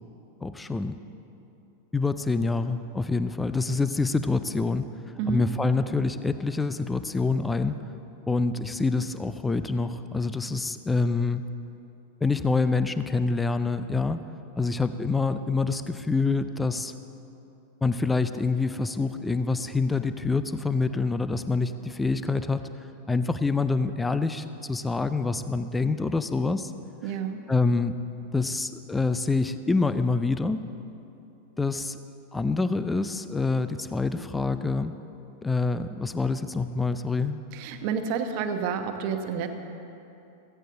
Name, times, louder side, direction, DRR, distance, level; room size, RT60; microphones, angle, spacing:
voice 1, 0.4-1.0 1.9-4.9 5.3-7.8 8.3-11.4 12.2-14.2 14.6-16.9 17.8-22.7 23.1-26.7 27.5-28.0 28.3-30.6 31.6-32.0 32.3-34.9 35.4-37.4, left 3 dB, 10° left, 11 dB, 0.5 m, -26 dB
voice 2, 27.0-27.4 37.5-39.5, right 7 dB, 45° right, 6 dB, 1.1 m, -29 dB
16.0 x 15.0 x 3.9 m, 2.8 s
figure-of-eight pair, 90°, 0 cm